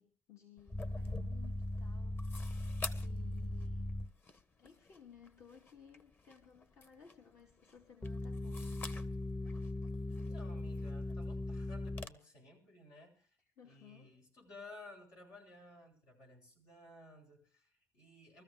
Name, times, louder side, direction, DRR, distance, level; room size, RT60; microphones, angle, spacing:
voice 1, 0.0-2.6 3.0-3.9 4.6-8.9 13.6-14.2, left 8 dB, 65° left, 1 dB, 2.6 m, -59 dB
sound 1, 0.6-12.1, left 3 dB, 40° left, 1.4 m, -51 dB
sound 2, 0.7-4.1 8.0-12.1, left 1 dB, 15° left, 0.6 m, -39 dB
voice 2, 10.1-13.4 13.6-18.4, left 2 dB, 90° left, 2 dB, 8.0 m, -56 dB
23.5 x 14.0 x 3.6 m, 0.42 s
cardioid pair, 105°, 6 cm